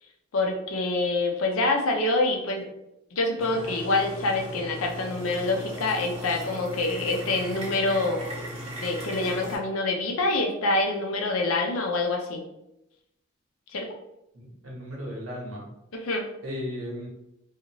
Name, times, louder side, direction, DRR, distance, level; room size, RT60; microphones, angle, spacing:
voice 1, 0.3-2.7 3.1-8.2 8.8-12.4 13.7-13.9 15.9-16.2, left 2 dB, 85° left, 2 dB, 0.6 m, -26 dB
sound 1, 3.4-9.6, equal, 30° right, 0.7 m, -37 dB
voice 2, 14.3-15.6 16.4-17.1, left 1 dB, 80° right, -3 dB, 1.0 m, -35 dB
2.6 x 2.4 x 2.9 m, 0.88 s
head